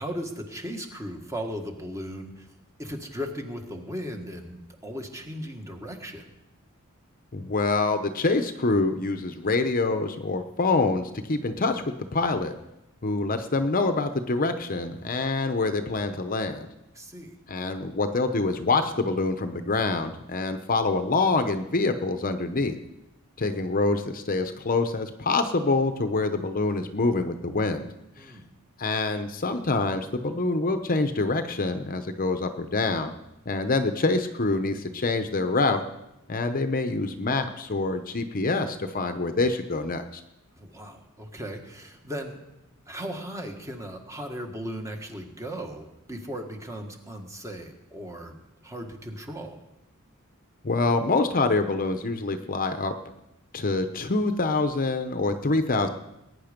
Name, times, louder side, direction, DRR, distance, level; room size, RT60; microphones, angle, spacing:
voice 1, 0.0-2.5 2.8-6.3 16.9-17.3 28.2-28.5 40.6-42.4 42.9-48.4 48.6-49.6, equal, 15° right, 4 dB, 1.7 m, -37 dB
voice 2, 7.3-12.5 13.0-16.7 17.5-22.8 23.4-27.8 28.2-28.3 28.8-33.1 33.5-35.8 36.3-40.2 50.6-52.9 53.5-55.9, left 3 dB, 40° left, 8 dB, 0.8 m, -26 dB
20.5 x 9.7 x 5.2 m, 0.90 s
head